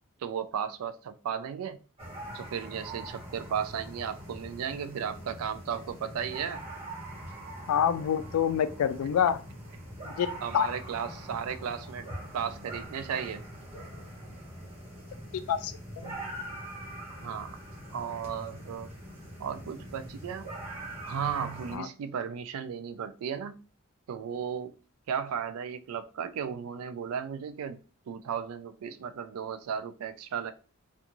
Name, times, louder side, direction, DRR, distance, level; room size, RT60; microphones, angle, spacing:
voice 1, 0.2-1.8 2.3-6.7 10.4-12.1 12.3-13.5 17.2-17.6 17.9-18.9 19.4-20.5 21.0-23.6 24.1-24.7 25.1-27.8 28.1-30.5, right 7 dB, 85° right, 12 dB, 0.3 m, -35 dB
sound 1, 2.0-21.8, right 1 dB, 30° right, 0.9 m, -43 dB
voice 2, 7.7-9.4 10.1-10.3 10.5-10.7 15.5-16.1 21.7-21.9, left 8 dB, 85° left, 14 dB, 0.3 m, -27 dB
2.5 x 2.3 x 2.9 m, 0.35 s
head